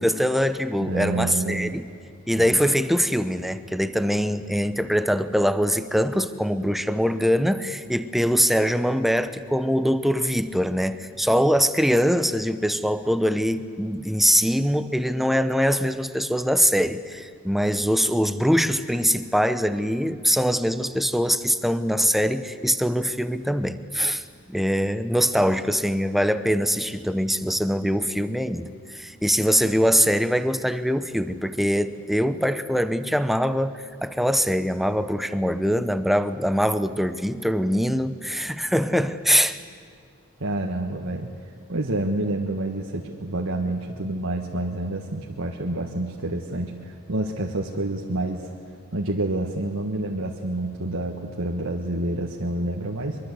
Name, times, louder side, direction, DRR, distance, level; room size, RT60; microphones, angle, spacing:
voice 1, 0.0-1.9 2.3-24.2 24.5-28.7 28.9-39.6, equal, ahead, 11 dB, 0.8 m, -23 dB
voice 2, 0.8-1.8 2.4-2.6 40.4-41.3 41.7-48.5 48.9-53.2, right 2 dB, 70° right, 0 dB, 1.5 m, -28 dB
23.0 x 23.0 x 8.2 m, 2.1 s
head